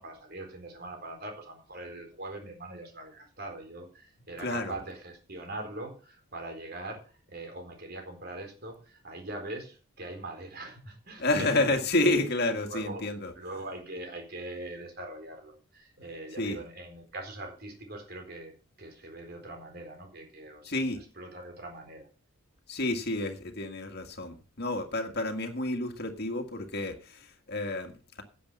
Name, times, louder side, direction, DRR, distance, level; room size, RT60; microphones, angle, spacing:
voice 1, 0.0-11.7 12.7-13.0 13.4-20.7 21.2-22.1, right 2 dB, 45° right, 4.2 m, -42 dB
voice 2, 4.4-4.8 11.2-13.3 16.4-16.6 20.6-21.0 22.7-28.2, left 2 dB, 45° left, 1.9 m, -30 dB
10.5 x 7.9 x 6.9 m
head